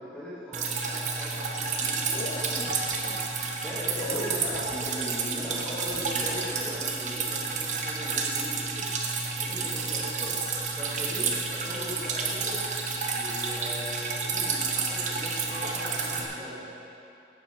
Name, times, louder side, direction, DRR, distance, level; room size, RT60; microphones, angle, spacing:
voice 1, 0.0-8.9 9.4-10.3 10.8-12.7 13.1-16.7, equal, 5° left, -12 dB, 1.9 m, -39 dB
Drip, 0.5-16.2, right 4 dB, 45° right, 0.8 m, -30 dB
sound 1, 2.0-3.0 3.9-5.0 5.9-6.9, left 3 dB, 45° left, 0.4 m, -40 dB
8.7 x 7.2 x 5.0 m, 2.7 s
head